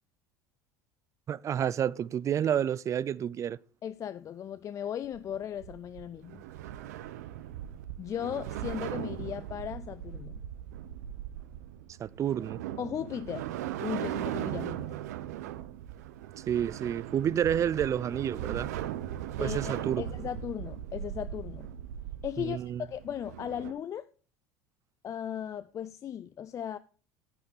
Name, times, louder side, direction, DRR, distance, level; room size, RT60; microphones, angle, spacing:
voice 1, 1.3-3.6 12.0-12.6 16.5-18.7 19.4-20.0 22.5-22.8, right 9 dB, 35° right, 0.4 m, -29 dB
voice 2, 3.8-6.4 8.0-10.4 12.8-13.5 13.8-15.0 19.4-21.7 22.2-24.1 25.0-26.8, left 9 dB, 35° left, 0.4 m, -37 dB
sound 1, 5.0-23.7, right 11 dB, 80° right, 0.7 m, -39 dB
10.5 x 6.4 x 4.3 m
hypercardioid pair, 75°, 9 cm